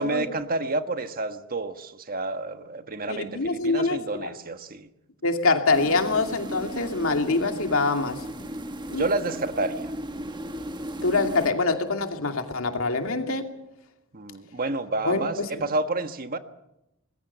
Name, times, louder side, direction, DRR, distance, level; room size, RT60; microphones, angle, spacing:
voice 1, 0.0-4.9 8.9-9.9 14.1-16.4, right 2 dB, 45° right, 9 dB, 1.4 m, -29 dB
voice 2, 3.1-4.3 5.2-8.2 8.9-9.1 11.0-13.5 15.0-15.5, left 3 dB, 70° left, 5 dB, 2.6 m, -25 dB
sound 1, 5.7-11.5, right 1 dB, 20° right, 1.2 m, -36 dB
25.5 x 21.0 x 6.9 m, 0.88 s
head